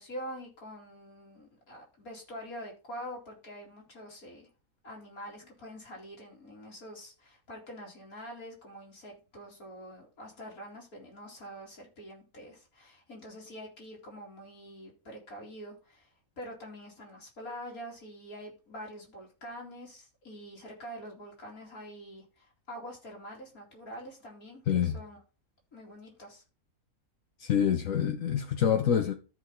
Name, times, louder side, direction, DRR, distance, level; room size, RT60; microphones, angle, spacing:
voice 1, 0.0-4.5 4.8-25.2 25.7-26.4, equal, 85° left, 3.3 m, -45 dB
voice 2, 24.7-25.0 27.4-29.1, left 8 dB, 70° left, 1.2 m, -26 dB
13.5 x 4.8 x 3.7 m
omnidirectional pair, 1.5 m